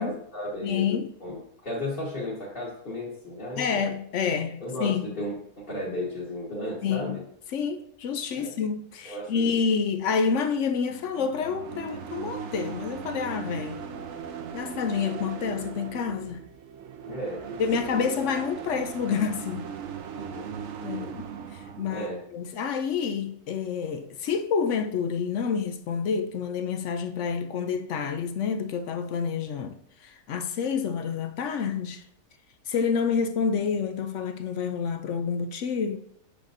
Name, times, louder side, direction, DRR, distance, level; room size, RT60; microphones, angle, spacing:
voice 1, 0.0-0.9 1.2-3.8 4.6-7.2 8.3-8.6 9.0-9.6 17.1-18.0 20.1-20.5 20.9-21.1 21.9-22.2, left 1 dB, 35° left, 1.5 m, -35 dB
voice 2, 0.6-1.1 3.6-5.1 6.8-7.2 7.5-13.8 14.5-16.4 17.6-19.7 20.8-32.0 32.7-36.0, left 6 dB, 70° left, 0.7 m, -28 dB
sound 1, 10.9-22.0, right 7 dB, 60° right, 0.8 m, -38 dB
7.2 x 6.5 x 2.6 m
omnidirectional pair, 1.6 m